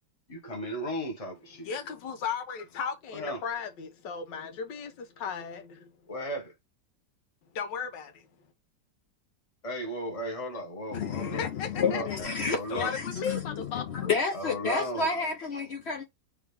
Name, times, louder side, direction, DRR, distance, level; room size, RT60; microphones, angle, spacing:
voice 1, 0.3-1.7 3.1-3.4 6.1-6.5 9.6-11.5 11.7-12.9 14.3-15.1, equal, 20° left, 1.4 m, -36 dB
voice 2, 1.6-5.9 7.5-8.3 10.9-12.0 12.4-14.1, left 6 dB, 80° left, 1.6 m, -36 dB
voice 3, 10.9-16.0, left 5 dB, 65° left, 0.6 m, -31 dB
3.8 x 3.2 x 3.4 m
omnidirectional pair, 1.9 m